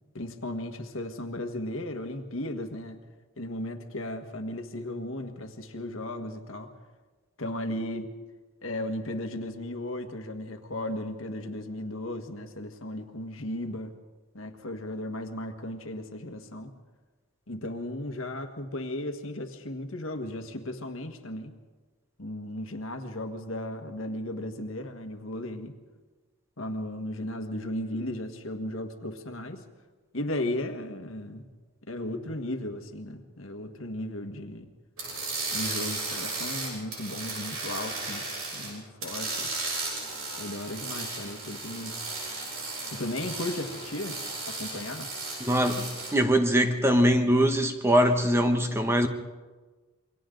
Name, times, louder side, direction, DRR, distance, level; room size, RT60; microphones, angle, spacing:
voice 1, 0.1-3.0 3.4-6.8 7.4-8.1 8.6-13.9 14.3-16.7 17.5-21.5 22.2-25.8 26.6-29.6 30.1-31.5 31.9-34.7 35.5-39.6 40.4-41.9 42.9-44.2 44.5-45.1, left 1 dB, 65° left, 6 dB, 1.6 m, -35 dB
sound 1, 35.0-38.7 39.0-46.1, right 3 dB, 75° right, 8.0 m, -35 dB
voice 2, 45.4-49.1, equal, 10° right, 6 dB, 1.1 m, -22 dB
28.0 x 23.5 x 3.9 m, 1.3 s
head